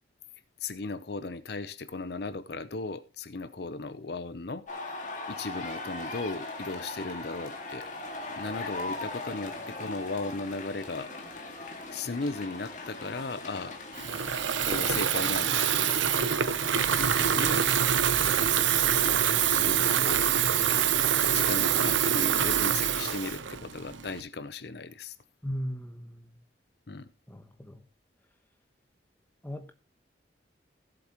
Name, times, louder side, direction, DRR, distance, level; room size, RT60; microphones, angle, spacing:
voice 1, 0.6-5.0 5.3-7.9 8.4-11.1 11.4-13.7 14.6-16.3 17.0-17.7 18.7-20.3 21.3-25.2 26.9-27.1, left 3 dB, 60° left, 0.7 m, -37 dB
sound 1, 4.7-17.5, left 2 dB, 40° left, 2.0 m, -40 dB
Water tap faucet / Fill (with liquid), 13.9-24.2, right 8 dB, 85° right, 0.8 m, -25 dB
voice 2, 25.4-26.3 27.3-27.8 29.4-29.7, equal, 10° left, 1.1 m, -37 dB
16.5 x 7.8 x 3.0 m
head